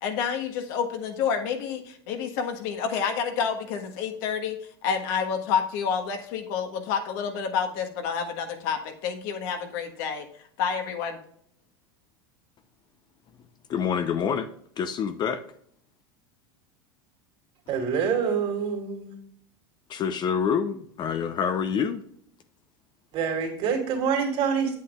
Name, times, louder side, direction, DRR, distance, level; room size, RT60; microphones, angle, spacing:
voice 1, 0.0-10.3 10.6-11.2, left 7 dB, 65° left, 4 dB, 1.4 m, -29 dB
voice 2, 13.7-14.5 14.8-15.4 19.9-22.0, left 7 dB, 35° left, 10 dB, 0.7 m, -27 dB
voice 3, 17.7-19.2 23.1-24.8, right 6 dB, 50° right, 0 dB, 2.7 m, -26 dB
8.4 x 7.9 x 2.4 m, 0.66 s
hypercardioid pair, 100°, 13 cm